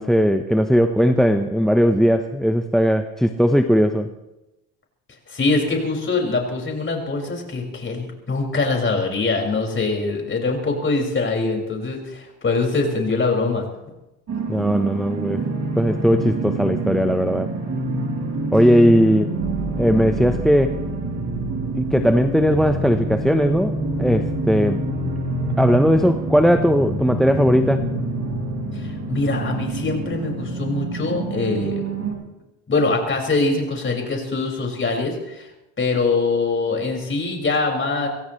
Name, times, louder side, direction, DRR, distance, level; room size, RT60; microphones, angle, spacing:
voice 1, 0.0-4.1 14.5-15.4 15.8-17.5 18.5-19.3 19.8-20.8 21.8-24.8 25.6-27.9, equal, ahead, 8 dB, 1.0 m, -18 dB
voice 2, 5.3-13.6 28.7-31.8 32.7-35.5 35.8-38.1, left 3 dB, 30° left, 1 dB, 5.9 m, -23 dB
sound 1, 14.3-32.1, right 2 dB, 40° right, 6.0 m, -26 dB
24.5 x 16.5 x 3.3 m, 0.98 s
hypercardioid pair, 75°, 41 cm